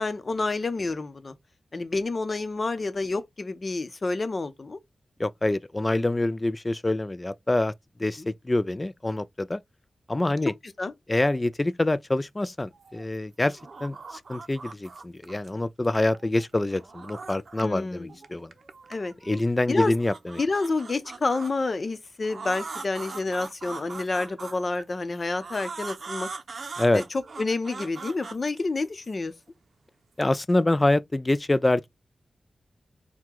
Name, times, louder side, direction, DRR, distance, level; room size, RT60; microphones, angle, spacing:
voice 1, 0.0-1.3 1.7-4.8 8.2-8.3 10.8-10.9 17.6-18.2 18.9-19.1 19.7-19.9 20.4-26.3 26.9-27.0 27.4-29.3, left 3 dB, 45° left, 0.7 m, -29 dB
voice 2, 5.2-7.7 8.0-9.6 10.1-10.5 11.1-18.5 19.2-20.4 26.8-27.0 30.2-31.9, left 2 dB, 25° left, 0.3 m, -26 dB
sound 1, 12.6-13.1 13.4-15.5 15.8-17.8 18.1-19.4 19.8-21.5 22.2-24.8 25.4-29.1, right 4 dB, 60° right, 0.6 m, -41 dB
4.5 x 2.2 x 3.8 m
cardioid pair, 70°, 0 cm